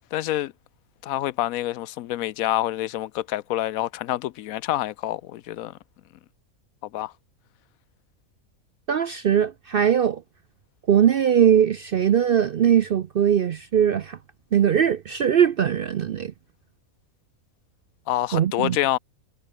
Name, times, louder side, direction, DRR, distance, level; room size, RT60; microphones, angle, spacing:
voice 1, 0.1-0.5 1.0-5.7 6.9-7.1 18.1-19.0, left 14 dB, 75° left, 1.0 m, -27 dB
voice 2, 8.9-10.2 10.9-14.2 14.5-16.3 18.3-18.8, right 9 dB, 60° right, 0.6 m, -20 dB
omnidirectional pair, 1.5 m